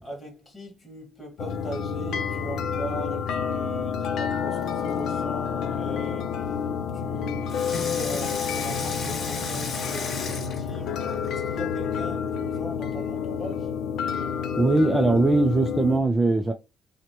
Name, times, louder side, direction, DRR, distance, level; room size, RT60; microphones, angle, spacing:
voice 1, 0.0-6.4 6.9-13.7, equal, 15° left, 2.1 m, -40 dB
sound 1, 1.4-16.0, left 7 dB, 70° left, 0.6 m, -29 dB
Water tap faucet / Sink (filling or washing), 4.5-5.2 7.5-11.4 12.1-12.2, left 3 dB, 45° left, 2.4 m, -34 dB
voice 2, 14.6-16.5, right 2 dB, 10° right, 0.4 m, -20 dB
5.8 x 2.1 x 2.9 m
cardioid pair, 160°, 0 cm